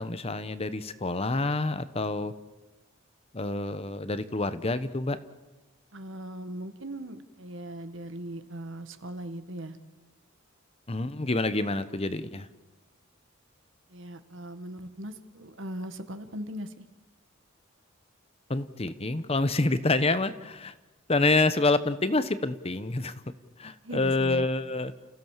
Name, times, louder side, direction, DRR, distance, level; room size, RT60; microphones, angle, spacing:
voice 1, 0.0-2.3 3.3-5.2 10.9-12.5 18.5-20.7 21.1-23.1 23.6-24.9, left 2 dB, 30° left, 12 dB, 0.9 m, -27 dB
voice 2, 5.9-9.8 13.9-16.8 23.8-24.5, right 1 dB, 60° right, 9 dB, 1.7 m, -39 dB
30.0 x 15.5 x 7.4 m, 1.1 s
head